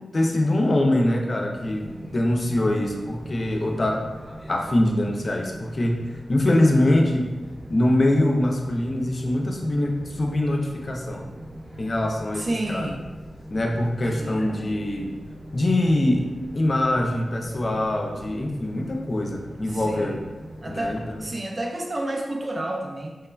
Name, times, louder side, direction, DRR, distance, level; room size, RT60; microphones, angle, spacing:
voice 1, 0.1-4.0 4.5-7.4 7.7-11.3 11.8-12.9 13.5-15.1 15.5-16.3 16.5-20.2 20.6-21.2, left 1 dB, 40° left, 2 dB, 0.3 m, -23 dB
sound 1, 1.5-21.3, equal, 5° left, 0.7 m, -41 dB
voice 2, 12.3-13.0 14.1-14.4 19.7-20.2 20.6-23.2, right 1 dB, 35° right, 1 dB, 0.4 m, -30 dB
3.0 x 2.1 x 2.3 m, 1.2 s
wide cardioid pair, 120°, 0 cm